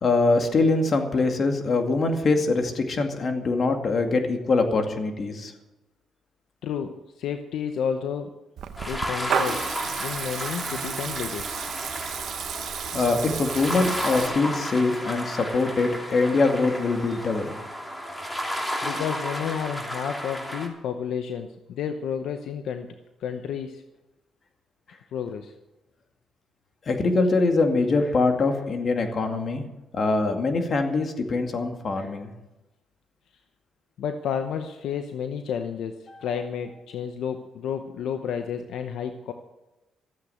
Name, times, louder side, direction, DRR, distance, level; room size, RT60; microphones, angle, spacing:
voice 1, 0.0-5.5 12.9-17.5 26.9-29.7 29.9-32.3, left 3 dB, 45° left, 5 dB, 2.2 m, -23 dB
voice 2, 6.6-8.3 8.8-9.6 10.0-11.6 18.8-22.9 23.2-23.8 25.1-25.5 34.0-39.3, left 7 dB, 80° left, 7 dB, 0.9 m, -31 dB
Water tap faucet / Liquid, 8.6-14.3, right 8 dB, 70° right, 1.0 m, -32 dB
sound 1, 8.8-20.7, equal, 10° left, 3.0 m, -33 dB
14.0 x 8.4 x 7.9 m, 1.0 s
cardioid pair, 90°, 0 cm